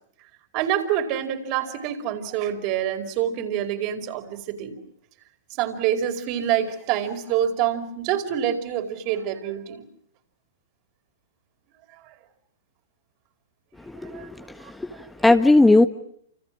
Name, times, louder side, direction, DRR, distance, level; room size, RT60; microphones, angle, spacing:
voice 1, 0.5-4.8 5.6-9.8 14.0-14.3, right 10 dB, 45° right, 7 dB, 4.8 m, -26 dB
voice 2, 13.9-14.3 14.7-15.9, left 2 dB, 5° left, 8 dB, 1.4 m, -18 dB
29.5 x 28.5 x 6.1 m, 0.67 s
figure-of-eight pair, 105°, 0 cm